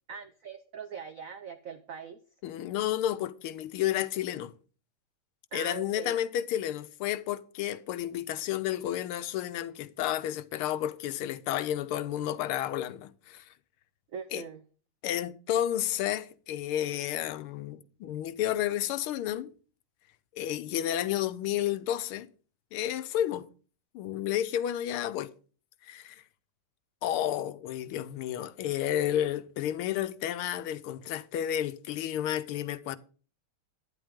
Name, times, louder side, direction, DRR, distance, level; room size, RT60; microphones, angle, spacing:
voice 1, 0.1-2.2 5.5-6.2 14.1-14.6, right 7 dB, 80° right, 0.7 m, -42 dB
voice 2, 2.4-4.5 5.5-13.5 14.3-14.4 15.0-19.5 20.3-22.3 22.7-23.5 23.9-25.3 25.8-26.2 27.0-33.0, left 11 dB, 90° left, 1.6 m, -31 dB
11.5 x 10.0 x 3.6 m
omnidirectional pair, 2.3 m